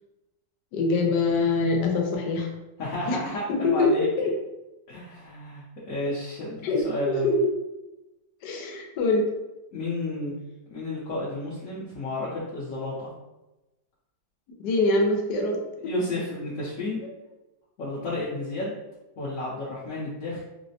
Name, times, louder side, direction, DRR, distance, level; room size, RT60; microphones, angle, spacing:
voice 1, 0.7-2.5 3.1-3.2 3.5-4.3 6.6-7.5 8.4-9.3 14.6-15.9, left 3 dB, 80° left, 2 dB, 1.2 m, -24 dB
voice 2, 2.8-4.3 4.9-7.3 9.7-10.3 10.7-13.1 15.8-17.0 17.8-18.7 19.2-20.4, left 2 dB, 60° left, -8 dB, 1.0 m, -32 dB
4.0 x 2.0 x 2.7 m, 1.0 s
omnidirectional pair, 1.8 m